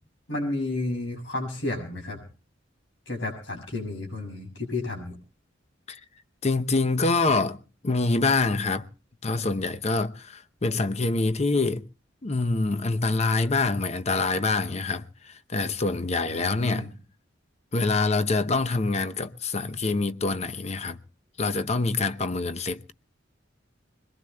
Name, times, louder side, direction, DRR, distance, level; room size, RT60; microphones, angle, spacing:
voice 1, 0.3-2.2 3.1-5.2 16.3-16.9, left 2 dB, 75° left, 7.1 m, -31 dB
voice 2, 6.4-8.9 9.2-11.9 12.2-16.9 17.7-21.0 21.4-22.9, left 3 dB, 35° left, 0.8 m, -25 dB
25.0 x 21.5 x 2.3 m
head